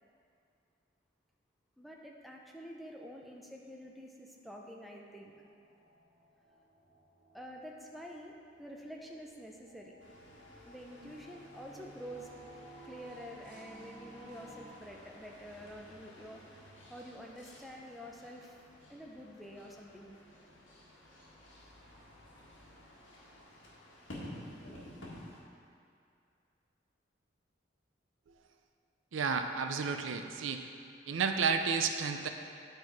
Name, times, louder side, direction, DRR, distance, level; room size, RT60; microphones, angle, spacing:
voice 1, 1.8-5.3 7.3-8.3 8.6-9.9 10.6-12.3 12.8-16.4 16.9-18.5 18.9-20.2, equal, ahead, -1 dB, 0.5 m, -48 dB
sound 1, 5.2-14.7, right 2 dB, 20° right, 1.8 m, -57 dB
sound 2, 10.0-25.4, left 1 dB, 75° left, 1.7 m, -53 dB
voice 2, 29.1-30.7 31.1-32.3, right 5 dB, 85° right, 6 dB, 0.5 m, -31 dB
9.7 x 4.5 x 4.7 m, 2.5 s
head